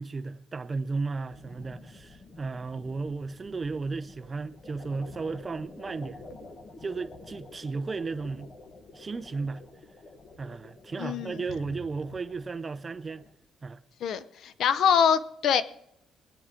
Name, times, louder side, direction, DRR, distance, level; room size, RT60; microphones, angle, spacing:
voice 1, 0.0-6.4 6.8-8.5 8.9-9.6 10.4-13.2 13.6-13.8, right 4 dB, 25° right, 0.4 m, -34 dB
sound 1, 1.3-13.3, left 2 dB, 30° left, 1.3 m, -49 dB
voice 2, 11.0-11.3 14.0-15.6, left 7 dB, 60° left, 0.7 m, -24 dB
20.5 x 9.5 x 3.7 m
cardioid pair, 150°, 0 cm